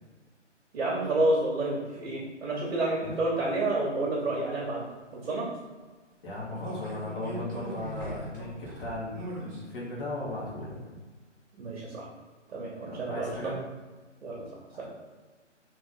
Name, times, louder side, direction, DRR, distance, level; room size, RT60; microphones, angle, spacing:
voice 1, 0.7-4.8 5.1-5.5 11.6-12.1 12.5-13.3 14.2-14.4 14.8-14.9, right 2 dB, 55° right, -5 dB, 1.0 m, -29 dB
voice 2, 6.2-10.7 12.8-13.6 14.7-14.8, left 2 dB, 45° left, -7 dB, 1.5 m, -37 dB
sound 1, 6.5-9.6 10.0-10.1, right 1 dB, 15° right, 0.6 m, -40 dB
3.5 x 3.1 x 3.8 m, 1.3 s
figure-of-eight pair, 140°, 37 cm